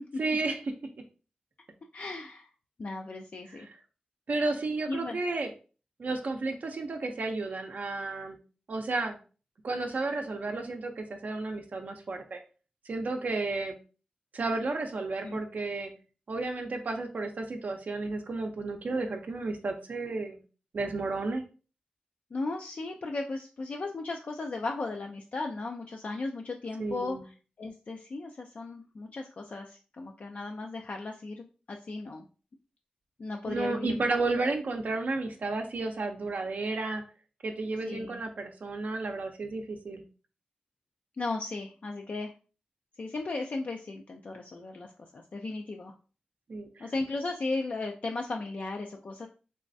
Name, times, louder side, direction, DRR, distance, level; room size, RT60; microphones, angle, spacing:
voice 1, 0.2-0.6 4.3-5.5 6.0-8.4 8.7-9.2 9.6-12.4 12.9-13.7 14.3-15.9 16.3-20.4 20.7-21.4 26.8-27.2 33.5-37.0 37.4-40.0 46.5-46.9, right 3 dB, 70° right, 4 dB, 0.5 m, -32 dB
voice 2, 1.9-2.5 2.8-3.7 4.9-5.2 15.2-15.4 22.3-27.3 27.6-32.2 33.2-34.5 37.8-38.2 41.2-42.3 43.0-45.9 46.8-49.3, left 3 dB, 60° left, 2 dB, 0.4 m, -36 dB
3.4 x 3.1 x 2.6 m, 0.36 s
cardioid pair, 60°, 3 cm